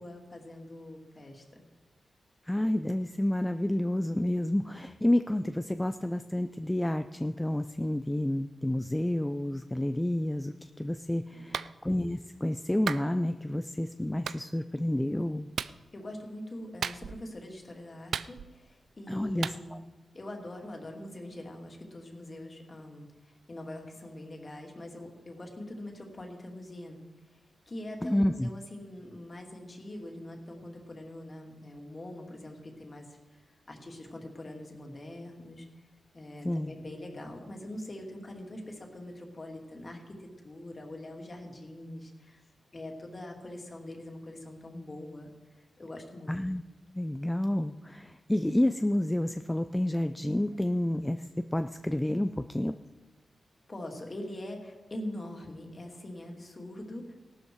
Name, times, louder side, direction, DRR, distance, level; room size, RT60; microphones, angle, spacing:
voice 1, 0.0-1.6 11.3-11.6 15.9-19.8 20.1-27.0 27.7-33.4 33.7-35.7 36.1-42.4 42.7-46.4 53.7-57.1, left 1 dB, 30° left, 2 dB, 2.7 m, -43 dB
voice 2, 2.5-15.5 19.1-19.8 28.0-28.5 36.4-36.7 46.3-46.6 47.0-52.7, left 1 dB, 10° left, 9 dB, 0.5 m, -29 dB
Clapping, 11.5-11.7 12.9-13.1 14.3-14.4 15.6-15.8 16.8-17.3 18.1-18.7 19.4-19.6, right 7 dB, 80° right, 0.4 m, -34 dB
18.0 x 12.5 x 4.7 m, 1.2 s
wide cardioid pair, 115°, 0 cm